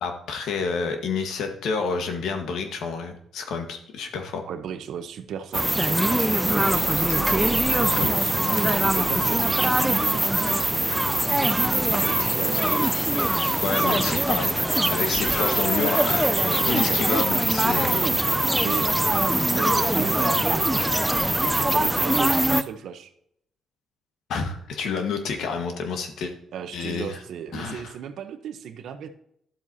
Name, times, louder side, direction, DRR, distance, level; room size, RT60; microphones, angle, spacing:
voice 1, 0.0-4.4 13.6-14.6 14.9-16.3 16.7-18.0 24.3-26.3 26.7-27.2 27.5-27.9, left 5 dB, 75° left, 5 dB, 1.4 m, -29 dB
voice 2, 4.4-10.6 11.2-12.8 16.4-17.3 17.9-18.9 19.5-23.1 26.5-29.1, right 8 dB, 75° right, 9 dB, 0.9 m, -36 dB
sound 1, 5.5-22.6, right 1 dB, 5° right, 0.5 m, -22 dB
sound 2, 6.0-11.0 11.5-12.6, right 3 dB, 25° right, 2.1 m, -39 dB
11.5 x 7.6 x 2.8 m, 0.72 s
cardioid pair, 90°, 0 cm